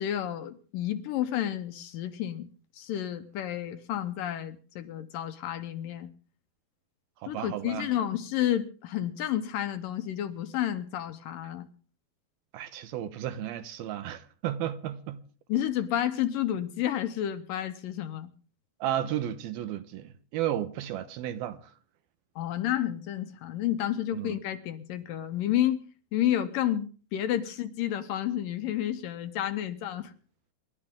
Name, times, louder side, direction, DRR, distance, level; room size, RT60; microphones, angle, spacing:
voice 1, 0.0-2.5 2.8-6.1 7.3-11.7 15.5-18.3 22.4-25.8 26.1-30.1, left 11 dB, 70° left, 2.4 m, -30 dB
voice 2, 7.2-7.9 12.5-15.2 18.8-21.7 24.1-24.4, right 11 dB, 80° right, 2.9 m, -33 dB
27.0 x 12.0 x 3.7 m
omnidirectional pair, 4.4 m